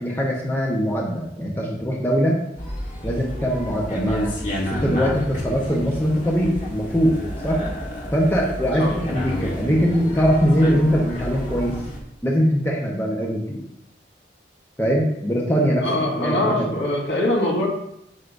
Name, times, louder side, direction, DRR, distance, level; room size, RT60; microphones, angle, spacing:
voice 1, 0.0-2.4 3.0-4.3 4.7-7.2 7.4-7.6 8.1-11.8 12.2-13.6 14.8-15.9 16.2-16.7, equal, 15° left, -3 dB, 1.1 m, -21 dB
sound 1, 2.6-12.0, equal, 45° left, 1.6 m, -30 dB
voice 2, 15.8-17.7, left 1 dB, 70° left, -4 dB, 2.4 m, -22 dB
8.2 x 8.0 x 2.7 m, 0.76 s
head